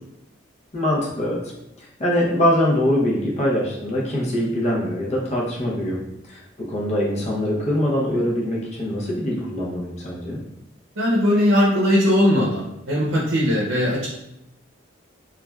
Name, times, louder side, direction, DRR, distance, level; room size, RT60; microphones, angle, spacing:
voice 1, 0.7-1.4 1.8-10.4, left 1 dB, 35° left, -3 dB, 0.6 m, -23 dB
voice 2, 11.0-14.1, left 1 dB, 80° right, -4 dB, 0.6 m, -19 dB
3.2 x 2.3 x 2.2 m, 0.84 s
head